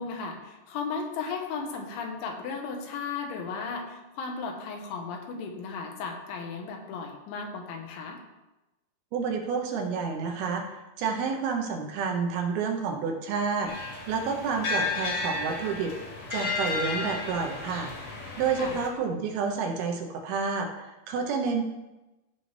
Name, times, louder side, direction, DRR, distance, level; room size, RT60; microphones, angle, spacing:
voice 1, 0.0-8.2 18.6-18.8, left 5 dB, 85° left, 3 dB, 3.5 m, -35 dB
voice 2, 9.1-15.9 16.3-17.9 18.4-21.6, right 5 dB, 75° right, 3 dB, 2.5 m, -29 dB
sound 1, 13.7-18.9, left 3 dB, 45° left, 1.8 m, -33 dB
15.5 x 5.7 x 3.3 m, 1.0 s
omnidirectional pair, 5.2 m